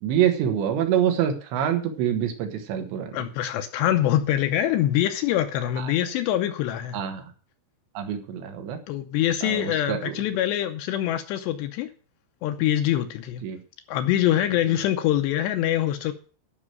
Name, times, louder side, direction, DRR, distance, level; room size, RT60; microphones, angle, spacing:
voice 1, 0.0-3.2 5.8-5.9 6.9-7.3 8.0-8.8 9.4-10.2 13.4-13.6, right 9 dB, 75° right, 3.4 m, -26 dB
voice 2, 3.1-7.0 8.9-11.9 12.4-13.5 13.9-16.1, left 12 dB, 75° left, 2.7 m, -24 dB
12.5 x 6.1 x 7.6 m
omnidirectional pair, 5.4 m